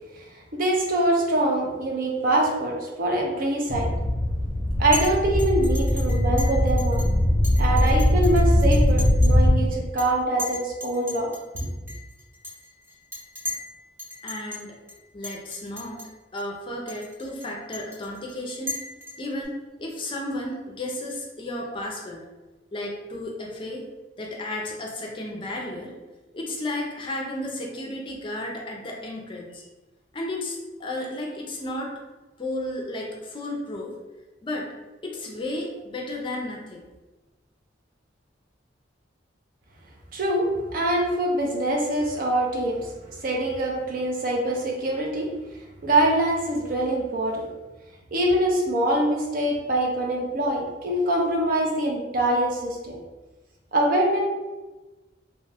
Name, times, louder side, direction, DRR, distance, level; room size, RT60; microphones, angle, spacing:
voice 1, 0.5-3.9 4.8-7.0 7.6-11.7 40.1-42.9 43.2-45.3 45.8-47.4 48.1-53.0 53.7-54.2, right 1 dB, 50° right, -1 dB, 0.6 m, -24 dB
sound 1, 3.7-9.6, left 1 dB, 10° left, 1.0 m, -21 dB
Chink clink, 4.9-5.1 5.4-7.1 7.4-9.4 9.7-10.1 10.4-13.7 14.0-14.6 14.9-15.0 15.2-16.1 16.4-16.5 16.9-19.4, left 2 dB, 10° right, 0.7 m, -36 dB
voice 2, 14.2-14.7 15.1-16.0 16.3-18.8 19.2-22.2 22.7-23.8 24.2-25.9 26.3-29.6 30.1-31.9 32.4-33.9 34.4-34.7 35.0-36.8, left 1 dB, 30° left, -1 dB, 0.5 m, -33 dB
2.8 x 2.2 x 3.4 m, 1.2 s
head